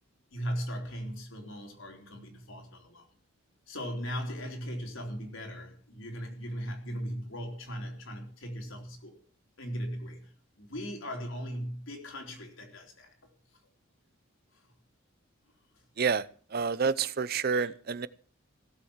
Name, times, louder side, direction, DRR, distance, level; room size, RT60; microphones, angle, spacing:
voice 1, 0.3-3.1 3.7-9.2 9.6-13.3 14.5-14.7 17.5-17.7, equal, 65° left, 3.9 m, -38 dB
voice 2, 16.5-18.1, right 5 dB, 45° right, 0.6 m, -28 dB
17.0 x 7.8 x 7.3 m
head